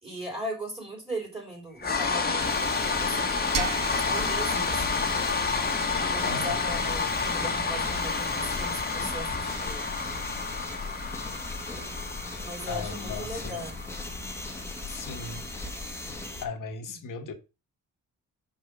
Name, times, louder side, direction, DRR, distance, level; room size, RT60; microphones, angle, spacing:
voice 1, 0.0-5.1 6.0-9.8 12.4-13.9, equal, 15° right, 3.5 m, -38 dB
sound 1, 1.8-15.9, left 4 dB, 30° left, 1.4 m, -30 dB
sound 2, 2.4-16.4, left 2 dB, 10° left, 1.4 m, -38 dB
sound 3, 3.5-6.4, right 7 dB, 80° right, 1.2 m, -39 dB
voice 2, 6.2-6.6 12.7-13.7 14.9-15.5 16.4-17.3, left 4 dB, 75° left, 1.6 m, -37 dB
5.6 x 4.9 x 6.3 m
wide cardioid pair, 130°, 32 cm